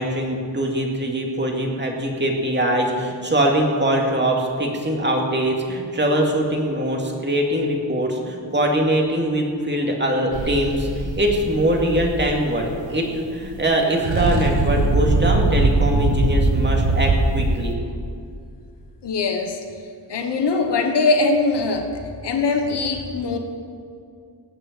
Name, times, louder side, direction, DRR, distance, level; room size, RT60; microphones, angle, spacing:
voice 1, 0.0-17.8, right 1 dB, 25° right, 0 dB, 2.3 m, -22 dB
sound 1, 10.3-13.2 13.5-13.6 13.9-17.7, right 2 dB, 90° right, 1.5 m, -21 dB
voice 2, 19.0-19.6 20.1-21.9 22.2-23.4, left 3 dB, 65° left, 4 dB, 1.3 m, -21 dB
18.0 x 6.8 x 7.5 m, 2.3 s
wide cardioid pair, 110°, 44 cm